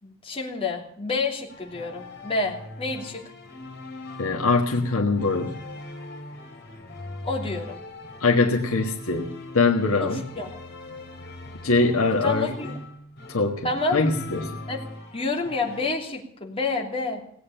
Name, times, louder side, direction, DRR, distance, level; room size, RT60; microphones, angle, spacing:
voice 1, 0.0-3.2 7.2-7.8 10.0-10.5 12.2-12.8 13.6-14.0 14.7-14.8 15.1-17.2, left 3 dB, 25° left, 0 dB, 2.9 m, -28 dB
sound 1, 1.5-15.8, left 2 dB, 50° left, 4.2 m, -41 dB
voice 2, 4.2-5.6 8.2-10.2 11.6-12.5 13.3-14.5, left 3 dB, 85° left, 1 dB, 1.5 m, -23 dB
18.0 x 8.7 x 9.0 m, 0.64 s
head